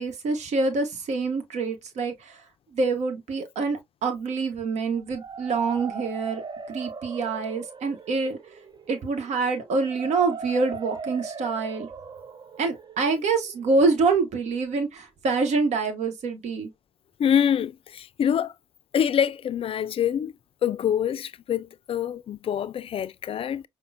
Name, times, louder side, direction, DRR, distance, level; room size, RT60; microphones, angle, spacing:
voice 1, 0.0-2.4 2.7-6.4 6.7-8.4 8.9-11.9 12.6-16.7, right 4 dB, 60° right, 1.0 m, -26 dB
sound 1, 4.9-14.8, right 5 dB, 35° right, 0.6 m, -40 dB
voice 2, 17.2-18.5 18.9-20.3 20.6-23.6, left 9 dB, 45° left, 0.4 m, -25 dB
5.3 x 2.1 x 2.5 m
hypercardioid pair, 50°, 13 cm